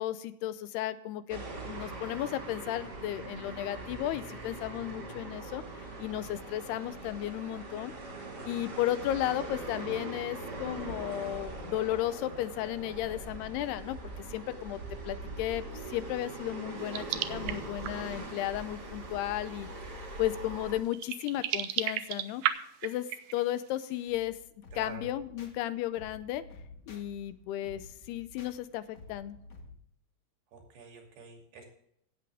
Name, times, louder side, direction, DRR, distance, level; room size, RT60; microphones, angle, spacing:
voice 1, 0.0-7.9 8.4-14.0 14.3-14.8 15.0-19.9 20.2-22.4 22.8-24.4 24.7-26.5 26.9-29.4, left 13 dB, 85° left, 13 dB, 2.7 m, -34 dB
sound 1, 1.3-20.8, right 2 dB, 30° right, 2.2 m, -42 dB
sound 2, 16.9-18.2 19.2-19.3 19.9-20.0 20.8-23.7, right 12 dB, 90° right, 1.9 m, -34 dB
sound 3, 24.1-29.7, left 3 dB, 45° left, 1.3 m, -52 dB
voice 2, 24.7-25.1 30.5-31.6, right 3 dB, 75° right, 2 dB, 4.6 m, -47 dB
17.0 x 7.8 x 3.4 m, 0.71 s
omnidirectional pair, 4.7 m